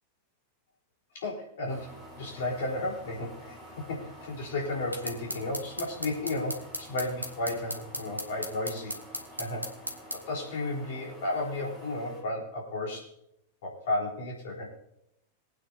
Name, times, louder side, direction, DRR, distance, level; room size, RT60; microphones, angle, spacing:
voice 1, 1.1-1.9 2.2-8.9 9.4-9.7 10.1-13.1 13.6-14.7, left 2 dB, 55° left, -1 dB, 4.1 m, -33 dB
sound 1, 1.7-12.2, right 1 dB, ahead, 4.6 m, -49 dB
sound 2, 4.9-10.2, equal, 90° right, 1.5 m, -36 dB
21.5 x 9.1 x 2.8 m, 0.78 s
figure-of-eight pair, 90°, 0 cm